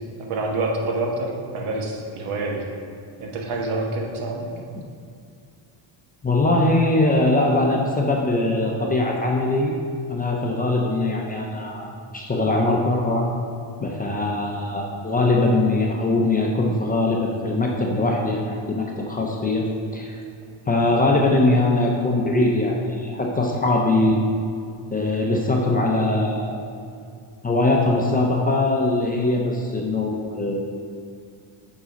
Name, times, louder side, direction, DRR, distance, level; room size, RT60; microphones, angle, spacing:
voice 1, 0.3-2.7 3.2-4.5, right 2 dB, 80° right, 0 dB, 1.3 m, -27 dB
voice 2, 6.2-9.7 10.1-13.3 13.8-19.7 19.9-20.2 20.7-24.2 24.9-26.6 27.4-30.6, left 2 dB, 20° left, -1 dB, 0.4 m, -21 dB
7.4 x 4.0 x 5.0 m, 2.4 s
cardioid pair, 165°, 49 cm